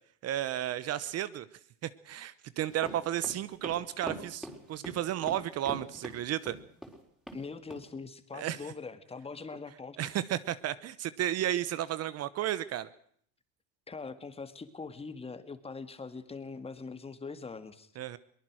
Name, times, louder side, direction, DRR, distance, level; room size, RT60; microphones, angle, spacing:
voice 1, 0.2-1.5 1.8-6.6 8.3-8.6 10.0-12.9 18.0-18.2, right 12 dB, 40° right, 16 dB, 1.0 m, -33 dB
sound 1, 2.7-7.0 7.3-7.4 7.7-7.8, equal, ahead, 4.3 m, -42 dB
voice 2, 7.3-10.1 13.9-17.9, left 4 dB, 15° left, 11 dB, 2.1 m, -42 dB
23.0 x 19.0 x 6.3 m, 0.64 s
supercardioid pair, 115°, 36 cm